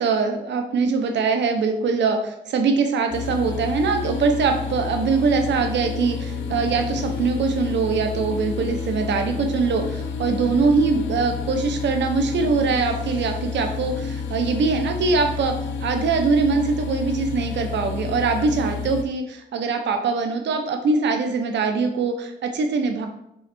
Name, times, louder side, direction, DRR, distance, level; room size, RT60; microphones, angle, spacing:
voice 1, 0.0-23.1, right 4 dB, 65° right, 5 dB, 1.1 m, -22 dB
sound 1, 3.1-19.0, left 5 dB, 70° left, 0.9 m, -30 dB
6.5 x 3.9 x 4.5 m, 0.80 s
cardioid pair, 90°, 20 cm